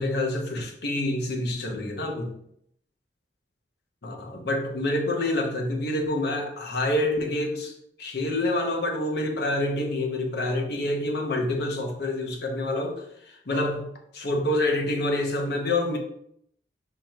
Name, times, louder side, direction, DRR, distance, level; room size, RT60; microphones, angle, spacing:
voice 1, 0.0-2.3 4.0-7.7 8.0-16.0, left 1 dB, 65° left, 2 dB, 0.8 m, -27 dB
4.7 x 2.5 x 4.4 m, 0.72 s
head